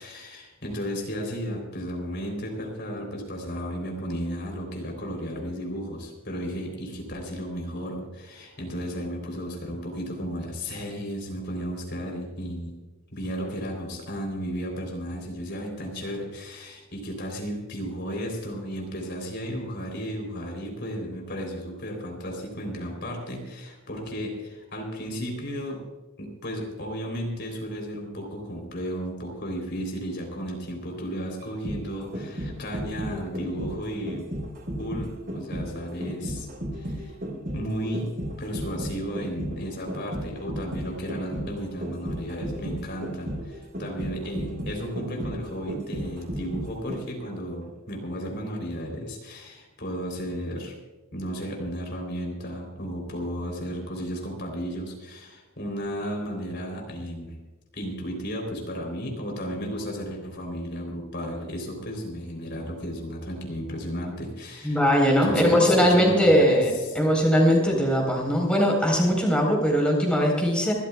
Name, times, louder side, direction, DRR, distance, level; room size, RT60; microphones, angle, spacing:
voice 1, 0.0-12.8 13.1-25.8 26.2-34.3 34.8-36.5 36.7-37.2 37.5-38.1 38.4-50.8 51.1-57.4 57.7-64.8 65.2-67.0, equal, 55° left, 1 dB, 3.7 m, -34 dB
sound 1, 31.4-47.3 47.6-47.7, equal, 45° right, 4.1 m, -34 dB
voice 2, 64.6-70.7, equal, 5° left, -1 dB, 4.2 m, -20 dB
26.0 x 14.0 x 2.4 m, 1.2 s
head